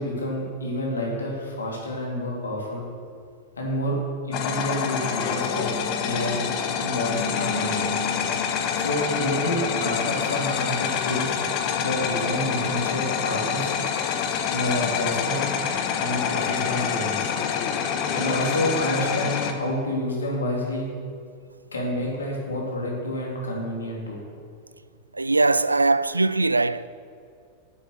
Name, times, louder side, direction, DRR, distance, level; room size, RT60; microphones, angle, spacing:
voice 1, 0.0-2.8 3.6-4.0 4.3-5.7 6.0-6.5 6.7-7.9 8.7-11.4 11.7-13.8 14.5-15.5 16.0-17.3 18.1-20.9 21.7-24.2, left 1 dB, 75° left, 3.1 m, -28 dB
sound 1, 4.3-19.5, left 7 dB, 40° left, 1.0 m, -26 dB
voice 2, 25.1-26.9, right 3 dB, 80° right, 0.3 m, -21 dB
10.0 x 8.3 x 6.8 m
figure-of-eight pair, 90°, 0 cm